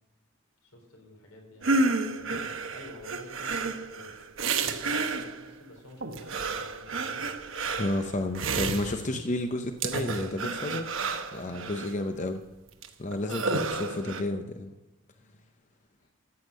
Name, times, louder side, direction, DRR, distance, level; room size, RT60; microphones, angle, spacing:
voice 1, 0.6-4.1 4.6-7.2 11.4-11.9 13.1-14.2 15.1-15.4 16.0-16.1, left 1 dB, 85° left, 1 dB, 4.0 m, -50 dB
sound 1, 1.6-5.5 6.0-9.3 9.8-11.9 12.8-12.9 13.1-14.2, right 3 dB, 65° right, 1.0 m, -31 dB
voice 2, 7.8-10.9 11.3-12.4 13.0-14.7, left 1 dB, 35° left, 6 dB, 0.6 m, -31 dB
14.0 x 8.0 x 6.3 m, 1.0 s
head